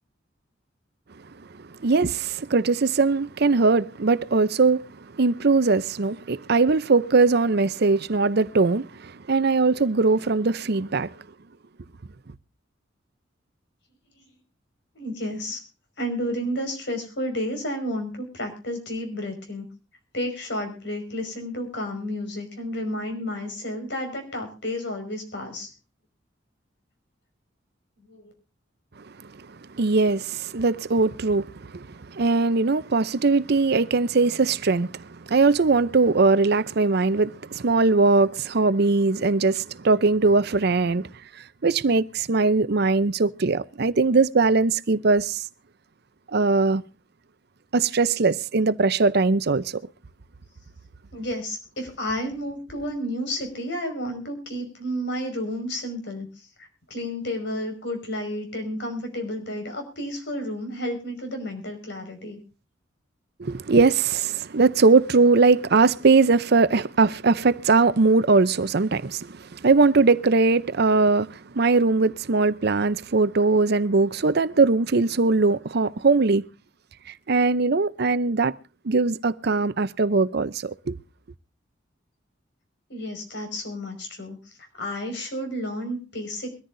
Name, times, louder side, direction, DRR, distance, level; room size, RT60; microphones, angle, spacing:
voice 1, 1.8-4.8 5.2-11.1 29.7-41.1 41.6-45.4 46.3-46.8 47.7-49.8 63.4-76.5 77.3-78.5 78.8-81.0, right 3 dB, 55° right, 0.7 m, -20 dB
voice 2, 14.9-15.6 16.0-19.7 20.1-25.7 28.1-28.3 51.1-62.4 82.9-86.6, left 1 dB, 65° left, 5.4 m, -31 dB
23.0 x 14.0 x 2.6 m
head